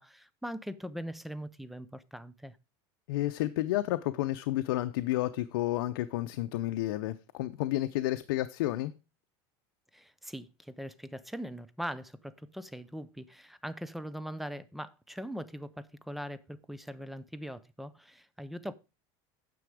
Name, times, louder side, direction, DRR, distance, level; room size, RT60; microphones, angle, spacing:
voice 1, 0.0-2.6 9.9-18.7, equal, ahead, 0.6 m, -41 dB
voice 2, 3.1-8.9, left 15 dB, 85° left, 0.7 m, -31 dB
9.5 x 6.9 x 4.9 m
supercardioid pair, 140°, 13 cm